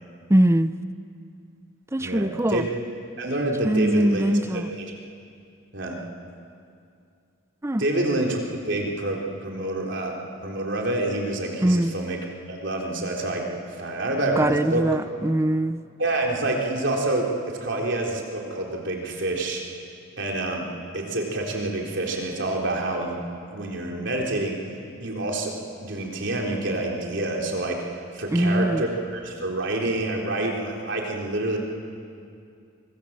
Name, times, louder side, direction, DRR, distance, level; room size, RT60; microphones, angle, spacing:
voice 1, 0.3-0.7 1.9-2.6 3.6-4.7 7.6-7.8 11.6-11.9 14.4-15.8 28.3-28.8, right 1 dB, 15° right, 12 dB, 0.5 m, -21 dB
voice 2, 2.0-2.7 3.2-4.9 5.7-6.0 7.8-10.2 10.4-12.2 12.5-13.4 13.8-14.8 16.0-19.6 20.2-20.7 20.9-24.6 25.0-25.5 25.8-31.6, right 2 dB, 60° right, 0 dB, 3.8 m, -27 dB
26.5 x 24.0 x 7.4 m, 2.4 s
head